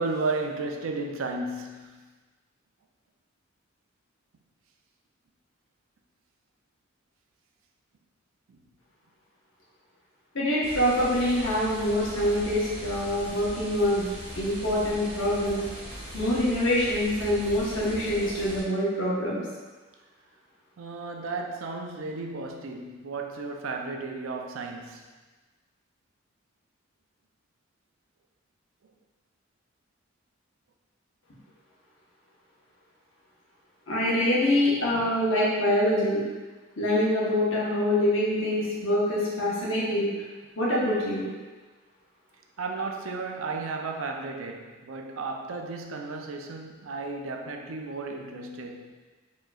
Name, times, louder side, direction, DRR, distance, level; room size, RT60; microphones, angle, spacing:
voice 1, 0.0-2.1 8.5-8.6 20.8-25.1 42.6-48.9, right 3 dB, 85° right, 0.4 m, -34 dB
voice 2, 10.3-15.6 16.1-19.4 33.9-36.2 36.8-40.1 40.6-41.3, left 1 dB, 75° left, 1.1 m, -25 dB
sound 1, 10.6-18.6, equal, 30° right, 1.0 m, -40 dB
4.6 x 3.0 x 2.3 m
head